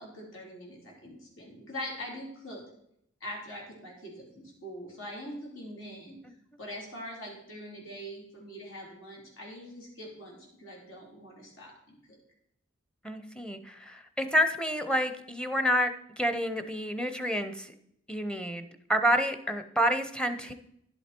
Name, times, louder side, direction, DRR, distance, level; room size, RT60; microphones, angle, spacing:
voice 1, 0.0-2.6 3.2-6.2 6.6-12.2, equal, 80° left, -1 dB, 3.8 m, -43 dB
voice 2, 13.0-17.7 18.1-20.5, equal, 5° left, 8 dB, 0.7 m, -29 dB
11.0 x 7.8 x 4.4 m, 0.73 s
head